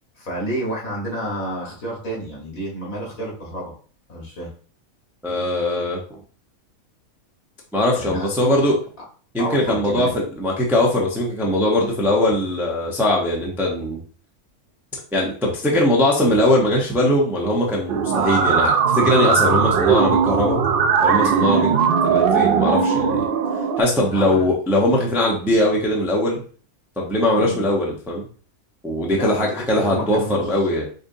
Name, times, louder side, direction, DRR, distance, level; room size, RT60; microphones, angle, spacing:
voice 1, 0.2-3.7 4.1-4.5 8.0-8.4 9.4-10.2 24.1-24.5 27.4-27.7 29.1-30.6, right 1 dB, 70° left, -3 dB, 1.9 m, -30 dB
voice 2, 5.2-6.2 7.7-8.7 9.3-14.0 15.1-20.6 21.0-21.7 22.0-23.2 23.8-26.4 27.0-28.2 28.8-30.9, left 1 dB, ahead, -3 dB, 0.5 m, -20 dB
sound 1, 17.9-23.8, right 6 dB, 70° right, 0.5 m, -19 dB
5.1 x 2.6 x 2.6 m, 0.42 s
omnidirectional pair, 1.5 m